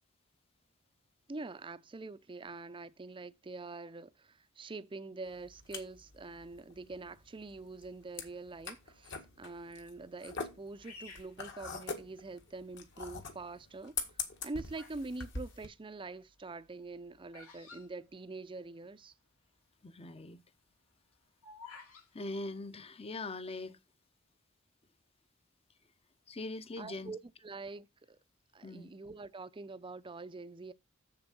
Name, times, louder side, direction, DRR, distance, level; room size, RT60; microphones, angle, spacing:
voice 1, 1.3-13.9 14.4-19.1 26.8-27.2 27.4-28.2 28.5-30.7, right 3 dB, 25° right, 0.5 m, -45 dB
sound 1, 5.3-15.7, left 4 dB, 55° left, 1.7 m, -43 dB
Bird vocalization bird call bird song, 10.8-12.3 13.0-13.4 14.1-15.1 15.4-18.8 19.1-19.2 19.4-19.7 20.2-22.1, left 4 dB, 85° left, 2.6 m, -54 dB
voice 2, 19.8-20.4 22.1-23.8 26.3-27.1 28.6-28.9, left 2 dB, 25° left, 0.7 m, -41 dB
7.3 x 6.9 x 5.3 m
head